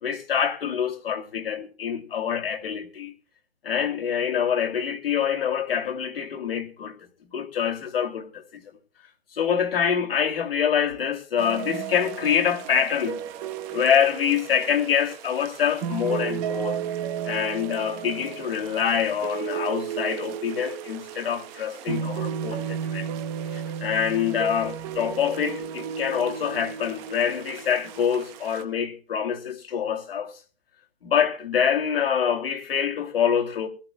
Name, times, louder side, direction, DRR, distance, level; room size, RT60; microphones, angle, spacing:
voice 1, 0.0-3.1 3.6-7.0 7.3-8.6 9.3-13.2 13.7-16.8 17.3-23.1 23.5-30.3 31.0-33.7, left 8 dB, 65° left, 2.5 m, -25 dB
sound 1, 11.4-28.6, right 8 dB, 20° right, 1.0 m, -34 dB
23.0 x 13.5 x 2.2 m
hypercardioid pair, 155°, 32 cm